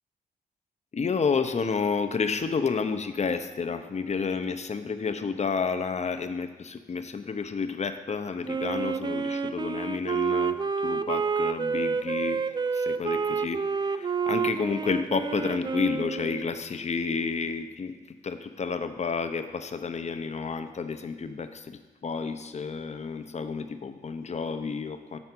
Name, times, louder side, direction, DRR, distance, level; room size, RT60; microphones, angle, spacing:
voice 1, 0.9-10.6 10.8-12.4 12.7-17.9 18.2-25.2, left 5 dB, 40° left, 9 dB, 0.7 m, -30 dB
Wind instrument woodwind instrument, 8.5-16.6, right 5 dB, 25° right, 0.3 m, -29 dB
7.0 x 4.3 x 6.0 m, 1.3 s
supercardioid pair, 50°, 17 cm